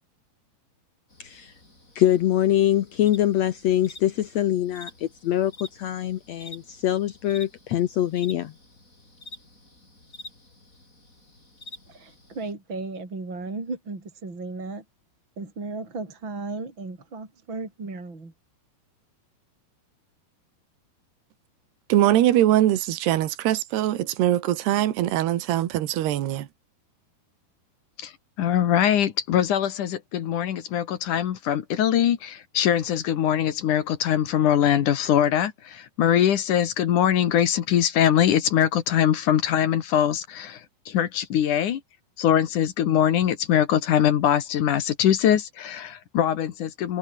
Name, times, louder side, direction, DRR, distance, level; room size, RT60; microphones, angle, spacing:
sound 1, 1.1-12.5, left 2 dB, 20° left, 7.2 m, -48 dB
voice 1, 2.0-8.5, left 12 dB, 90° left, 1.5 m, -23 dB
voice 2, 11.9-14.8 15.4-18.3, right 3 dB, 30° right, 5.7 m, -35 dB
voice 3, 21.9-26.5, right 13 dB, 80° right, 3.7 m, -22 dB
voice 4, 28.4-41.8 42.2-47.0, left 10 dB, 60° left, 2.6 m, -22 dB
omnidirectional pair, 4.7 m